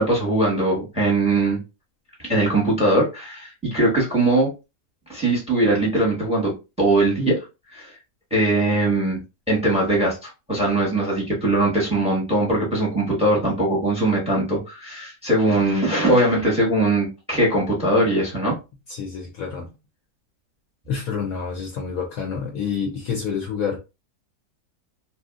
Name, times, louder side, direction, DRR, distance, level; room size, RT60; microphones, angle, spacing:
voice 1, 0.0-1.6 2.3-4.5 5.1-6.5 6.8-7.4 7.7-7.9 8.3-9.2 9.5-18.6, right 2 dB, 5° right, 0.9 m, -21 dB
voice 2, 18.9-19.7 20.9-23.8, left 6 dB, 65° left, 0.9 m, -28 dB
2.8 x 2.6 x 2.4 m
omnidirectional pair, 1.8 m